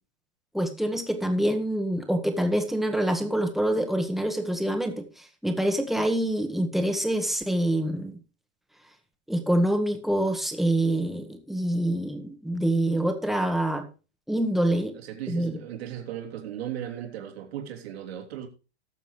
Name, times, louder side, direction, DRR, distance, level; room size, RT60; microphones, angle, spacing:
voice 1, 0.5-5.0 5.4-8.1 9.3-13.8 14.3-14.9 15.3-15.6, right 1 dB, ahead, 1.7 m, -26 dB
voice 2, 14.9-18.5, right 10 dB, 65° right, 3.0 m, -36 dB
18.5 x 7.1 x 3.2 m
hypercardioid pair, 105°, 34 cm